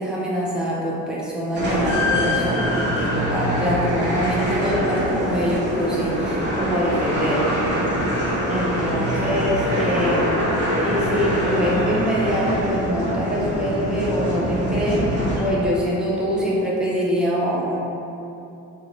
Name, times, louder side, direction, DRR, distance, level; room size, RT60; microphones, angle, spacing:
voice 1, 0.0-7.6 8.5-10.3 10.8-17.8, equal, 5° right, -6 dB, 0.6 m, -24 dB
sound 1, 1.5-15.8, equal, 35° right, 1.1 m, -24 dB
2.8 x 2.5 x 2.9 m, 2.7 s
cardioid pair, 90°, 31 cm